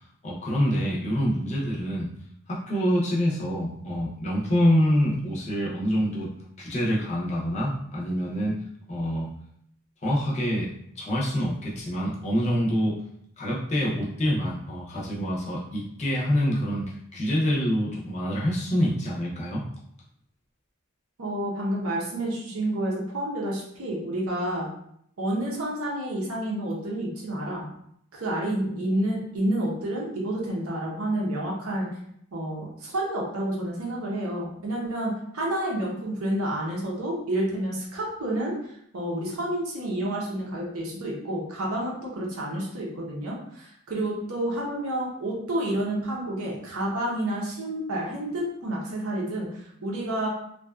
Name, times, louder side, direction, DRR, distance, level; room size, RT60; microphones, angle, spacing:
voice 1, 0.2-2.1 2.5-6.3 6.6-8.6 8.9-9.3 10.0-10.7 11.0-13.0 13.4-19.6, equal, 30° left, -4 dB, 0.5 m, -26 dB
voice 2, 21.2-24.7 25.2-27.7 28.1-31.9 32.3-38.6 38.9-50.3, right 1 dB, 75° right, -2 dB, 0.7 m, -29 dB
2.6 x 2.3 x 2.3 m, 0.71 s
head